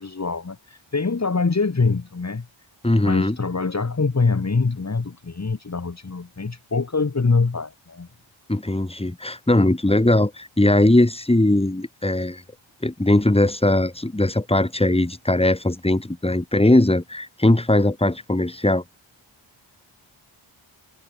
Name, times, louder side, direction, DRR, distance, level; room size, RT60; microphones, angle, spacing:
voice 1, 0.0-2.5 3.0-8.1, left 4 dB, 35° left, 2.4 m, -24 dB
voice 2, 2.8-3.4 8.5-12.4 12.8-18.8, left 1 dB, 10° left, 3.3 m, -19 dB
wide cardioid pair, 130°, 49 cm